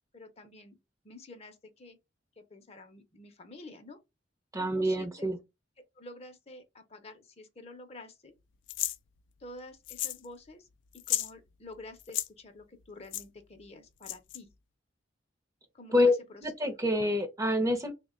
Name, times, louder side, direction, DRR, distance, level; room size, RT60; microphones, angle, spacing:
voice 1, 0.1-0.8 1.0-2.0 2.4-4.0 4.6-5.3 6.0-8.3 9.4-10.7 11.1-14.5 15.7-16.4, left 2 dB, 35° left, 0.6 m, -49 dB
voice 2, 4.5-5.4 15.9-16.1 16.4-17.9, left 1 dB, 20° right, 0.6 m, -26 dB
sound 1, 8.7-9.0 9.9-10.3 10.5-10.6 10.9-11.3 12.0-12.3 13.1-13.2 14.0-14.4, left 13 dB, 75° left, 0.4 m, -33 dB
3.4 x 2.2 x 3.6 m
head